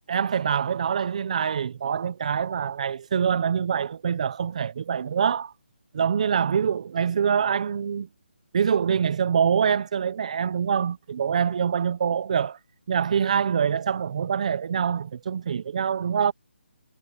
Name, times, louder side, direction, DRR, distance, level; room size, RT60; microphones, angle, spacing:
voice 1, 0.1-5.5 5.9-8.1 8.5-12.6 12.9-16.3, right 7 dB, 35° right, 0.6 m, -25 dB
hypercardioid pair, 170°, 6 cm